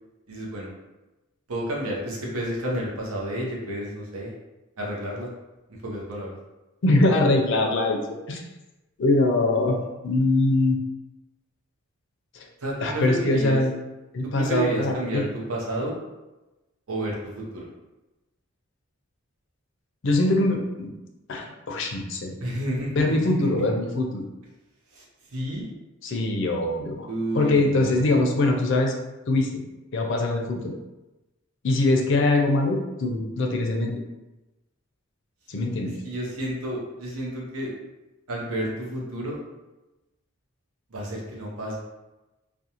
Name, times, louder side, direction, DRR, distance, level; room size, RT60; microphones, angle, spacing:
voice 1, 0.3-0.7 1.5-4.3 4.8-5.3 5.8-6.3 12.6-13.6 14.2-16.0 16.9-17.7 22.4-23.4 24.9-25.0 25.3-25.7 27.1-28.2 36.0-37.7 38.3-39.4 40.9-41.8, right 1 dB, 80° right, -2 dB, 0.7 m, -30 dB
voice 2, 6.8-8.4 9.0-9.7 10.0-10.8 12.3-12.5 12.8-13.7 14.1-15.3 20.0-20.9 21.3-22.3 22.9-24.2 26.0-27.1 27.3-28.9 29.3-29.5 29.9-30.7 31.6-33.9 35.5-36.0, left 2 dB, 60° left, 2 dB, 0.4 m, -22 dB
2.5 x 2.2 x 2.8 m, 1.0 s
head